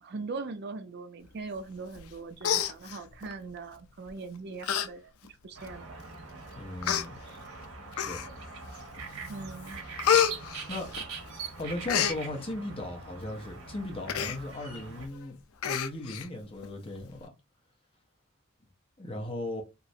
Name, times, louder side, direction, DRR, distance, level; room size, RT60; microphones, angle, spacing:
voice 1, 0.0-5.1 5.4-6.0 7.3-7.4 9.3-9.8, right 3 dB, 50° right, 0.4 m, -40 dB
Human voice, 2.0-2.1 2.4-3.3 4.1-4.2 4.6-4.9 5.3-5.4 6.1-6.2 6.8-7.1 7.9-8.5 9.0-9.3 9.6-11.3 11.6-12.2 14.1-14.4 14.8-14.9 15.1-15.2 15.6-16.3 16.6-16.7, left 9 dB, 80° left, 0.4 m, -28 dB
sound 1, 5.5-15.1, right 4 dB, 85° right, 0.9 m, -43 dB
voice 2, 6.6-7.2 7.9-8.2 10.7-10.9 11.6-15.4 15.6-17.3 19.0-19.6, left 2 dB, 25° left, 0.6 m, -37 dB
3.0 x 2.4 x 2.6 m
head